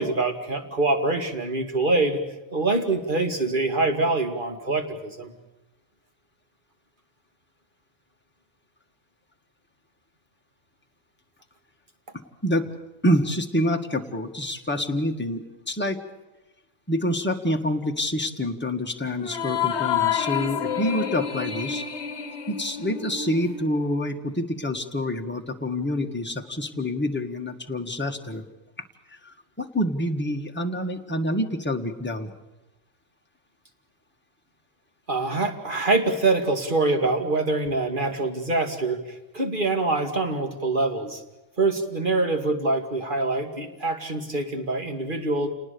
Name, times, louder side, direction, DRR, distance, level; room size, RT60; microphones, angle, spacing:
voice 1, 0.0-2.2 2.5-5.3 35.1-41.2 41.6-45.5, right 2 dB, 40° right, 4 dB, 2.5 m, -25 dB
voice 2, 12.4-12.7 13.0-16.0 16.9-21.8 22.5-28.4 29.1-32.3, left 1 dB, 10° left, 3 dB, 1.6 m, -27 dB
sound 1, 19.2-24.0, left 8 dB, 55° left, 1.4 m, -29 dB
28.5 x 19.5 x 7.0 m, 1.0 s
omnidirectional pair, 1.4 m